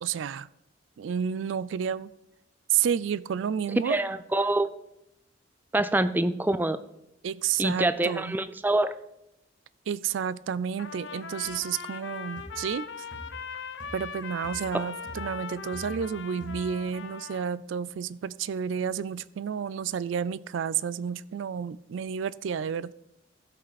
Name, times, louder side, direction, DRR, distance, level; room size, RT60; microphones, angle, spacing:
voice 1, 0.0-0.5 1.0-2.1 2.7-4.0 7.2-8.4 9.9-12.9 13.9-22.9, right 7 dB, 80° right, 19 dB, 0.3 m, -30 dB
voice 2, 3.8-4.7 5.7-6.8 7.6-8.9, right 2 dB, 10° right, 12 dB, 0.4 m, -25 dB
Trumpet, 10.8-17.5, left 6 dB, 75° left, 0.7 m, -40 dB
sound 1, 11.4-11.6 12.4-12.6 13.1-13.5 13.8-14.1 14.4-14.7 15.1-16.2 16.4-16.8, right 1 dB, 50° right, 2.5 m, -44 dB
16.0 x 5.6 x 4.1 m, 0.84 s
head